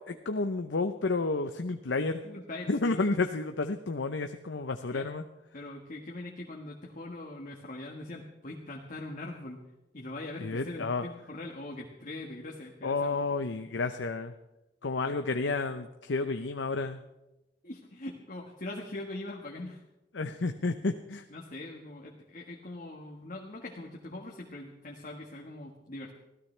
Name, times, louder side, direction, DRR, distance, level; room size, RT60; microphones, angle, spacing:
voice 1, 0.0-2.2 2.7-5.2 10.4-11.0 12.8-14.3 14.8-17.0 20.1-21.2, left 3 dB, 85° left, 7 dB, 0.8 m, -31 dB
voice 2, 2.2-3.0 4.9-5.1 5.5-9.6 9.9-13.2 17.6-19.8 21.3-26.1, left 2 dB, 45° left, 0 dB, 1.5 m, -42 dB
25.0 x 16.0 x 3.3 m, 0.97 s
head